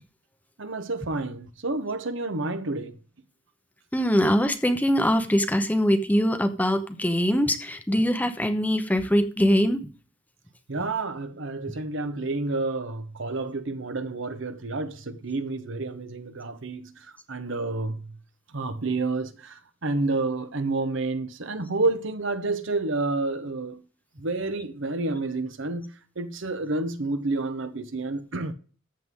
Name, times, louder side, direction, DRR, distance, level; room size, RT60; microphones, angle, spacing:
voice 1, 0.6-3.0 10.7-16.9 17.3-18.2 18.5-23.8 24.2-28.5, right 3 dB, 65° right, 1.0 m, -29 dB
voice 2, 3.9-9.8, equal, 10° left, 0.8 m, -22 dB
14.0 x 7.7 x 3.7 m
head